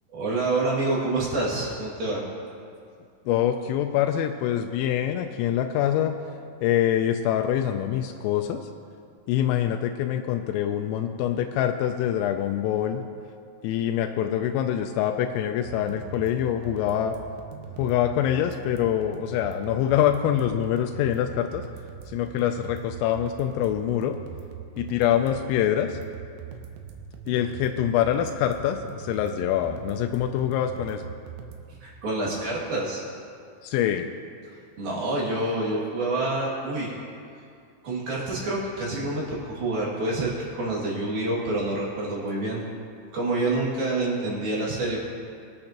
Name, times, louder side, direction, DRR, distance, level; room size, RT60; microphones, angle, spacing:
voice 1, 0.1-2.2 31.8-33.0 34.8-37.0 37.8-42.6 43.1-45.0, right 2 dB, 55° right, -6 dB, 3.7 m, -27 dB
voice 2, 3.3-6.1 6.6-8.6 9.3-13.0 13.6-17.2 17.8-21.6 22.1-24.2 24.8-26.0 27.3-31.1 33.6-34.1, left 10 dB, 85° left, 5 dB, 3.2 m, -25 dB
sound 1, 15.6-31.6, right 8 dB, 90° right, 3.5 m, -41 dB
23.5 x 8.8 x 2.9 m, 2.3 s
omnidirectional pair, 5.8 m